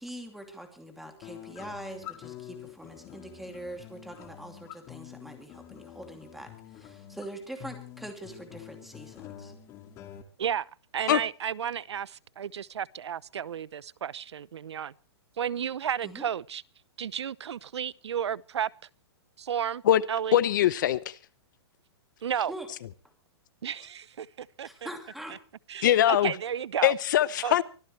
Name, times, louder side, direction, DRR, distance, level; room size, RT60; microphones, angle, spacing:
voice 1, 0.0-9.5 16.0-16.2 22.5-22.7 24.6-25.4, right 1 dB, ahead, 2.7 m, -43 dB
sound 1, 1.2-10.2, left 11 dB, 20° left, 2.0 m, -47 dB
voice 2, 10.4-14.9 15.4-16.6 17.0-18.7 19.4-19.8 20.1-20.4 22.2-22.5 23.6-24.9 25.7-26.9 27.4-27.6, right 9 dB, 90° right, 0.8 m, -32 dB
voice 3, 20.3-21.1 25.8-26.3 26.8-27.6, left 12 dB, 45° left, 0.8 m, -22 dB
24.0 x 14.5 x 3.3 m
hypercardioid pair, 165°, 14 cm